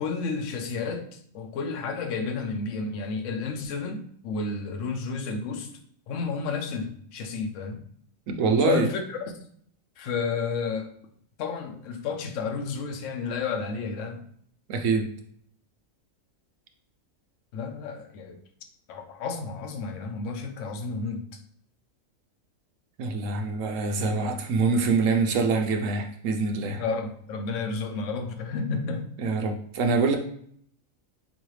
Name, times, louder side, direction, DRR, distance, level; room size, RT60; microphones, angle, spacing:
voice 1, 0.0-5.7 6.1-7.8 8.6-9.4 10.0-10.9 11.4-14.2 17.5-18.4 18.9-21.3 26.7-29.0, left 4 dB, 70° left, 5 dB, 1.0 m, -31 dB
voice 2, 8.3-8.9 14.7-15.1 23.0-26.8 29.2-30.2, right 4 dB, 75° right, 4 dB, 1.0 m, -25 dB
3.8 x 3.1 x 3.1 m, 0.64 s
omnidirectional pair, 1.4 m